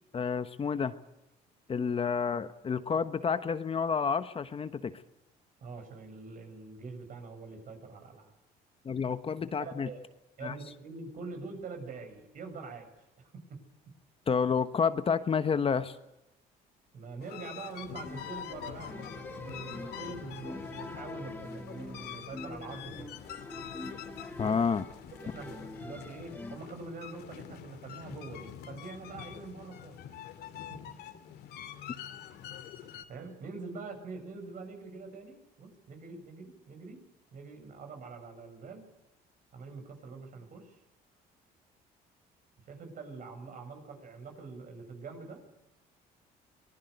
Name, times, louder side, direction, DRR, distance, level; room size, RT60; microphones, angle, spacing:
voice 1, 0.1-0.9 1.7-5.0 8.8-9.9 10.4-10.5 14.3-16.0 24.4-24.8, left 6 dB, 35° left, 11 dB, 1.2 m, -29 dB
voice 2, 5.6-8.4 9.6-10.0 10.4-12.9 13.2-13.6 16.9-23.1 24.4-24.6 25.2-30.0 30.7-30.9 33.1-37.0 37.3-38.8 39.5-40.8 42.7-45.5, right 4 dB, 55° right, 6 dB, 7.2 m, -44 dB
sound 1, 17.2-33.0, left 10 dB, 75° left, 2.6 m, -45 dB
sound 2, 18.0-26.6, left 2 dB, 10° left, 2.4 m, -45 dB
23.5 x 20.0 x 8.0 m, 0.94 s
cardioid pair, 110°, 17 cm